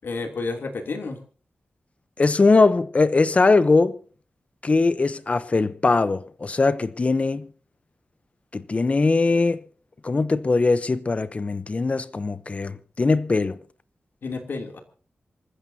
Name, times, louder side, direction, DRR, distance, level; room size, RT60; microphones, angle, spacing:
voice 1, 0.0-1.2 14.2-14.8, left 3 dB, 70° left, 3.0 m, -30 dB
voice 2, 2.2-4.0 4.6-7.5 8.5-9.6 10.0-13.6, left 3 dB, 35° left, 0.8 m, -21 dB
27.0 x 15.0 x 2.8 m
wide cardioid pair, 115°, 4 cm